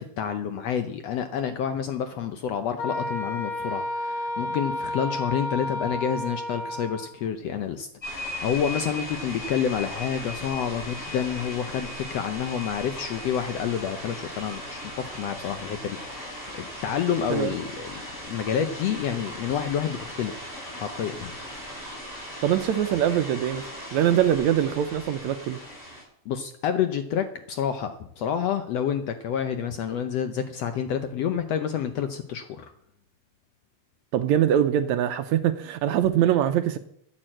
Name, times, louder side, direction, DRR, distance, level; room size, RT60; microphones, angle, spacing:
voice 1, 0.0-16.3 16.6-18.0 18.3-20.4 20.8-21.3 26.3-32.7, left 8 dB, 70° left, 8 dB, 1.6 m, -29 dB
Wind instrument woodwind instrument, 2.8-7.2, left 1 dB, 90° left, 3.7 m, -31 dB
sound 1, 8.0-26.0, left 1 dB, 5° left, 6.7 m, -38 dB
voice 2, 22.4-23.7 23.9-25.6 34.1-36.8, right 10 dB, 75° right, 10 dB, 1.8 m, -23 dB
13.5 x 9.0 x 7.6 m, 0.71 s
omnidirectional pair, 3.7 m